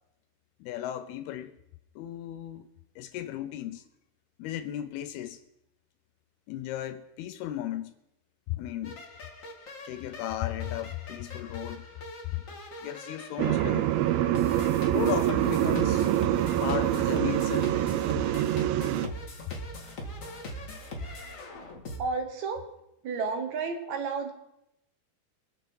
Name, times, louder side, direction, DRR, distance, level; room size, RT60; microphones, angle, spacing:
voice 1, 0.6-1.5 2.0-2.7 3.0-3.9 4.4-5.4 6.5-7.9 8.5-9.0 9.9-11.9 12.3-12.4 12.8-13.9 14.9-16.1 16.6-17.8, left 12 dB, 80° left, 2.4 m, -35 dB
sound 1, 8.8-22.0, equal, 50° left, 0.9 m, -41 dB
sound 2, 13.4-19.1, right 13 dB, 85° right, 2.1 m, -25 dB
voice 2, 22.0-22.7 23.0-24.3, right 4 dB, 65° right, 1.9 m, -31 dB
23.0 x 7.8 x 4.6 m
omnidirectional pair, 4.8 m